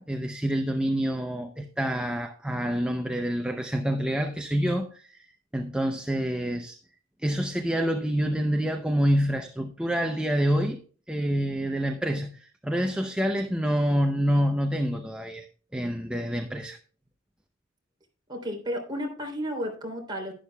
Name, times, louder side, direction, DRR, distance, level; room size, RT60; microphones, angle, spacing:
voice 1, 0.0-5.2 5.5-6.8 7.2-10.8 11.1-15.5 15.7-16.8, equal, 5° right, 0.6 m, -27 dB
voice 2, 18.3-20.3, equal, 25° right, 3.2 m, -32 dB
11.5 x 11.5 x 2.3 m
head